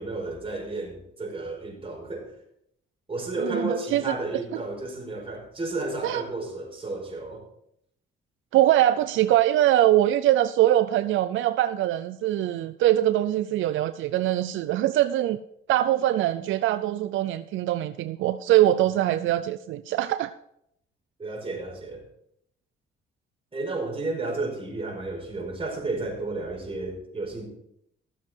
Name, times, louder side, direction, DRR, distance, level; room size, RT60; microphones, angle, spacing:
voice 1, 0.0-2.3 3.1-7.4 18.9-19.0 19.2-19.3 21.2-22.0 23.5-27.5, right 2 dB, 30° right, 0 dB, 4.8 m, -32 dB
voice 2, 3.4-4.1 6.0-6.2 8.5-15.4 15.7-20.3, right 13 dB, 80° right, 12 dB, 0.5 m, -22 dB
14.0 x 7.6 x 4.5 m, 0.74 s
cardioid pair, 90°, 20 cm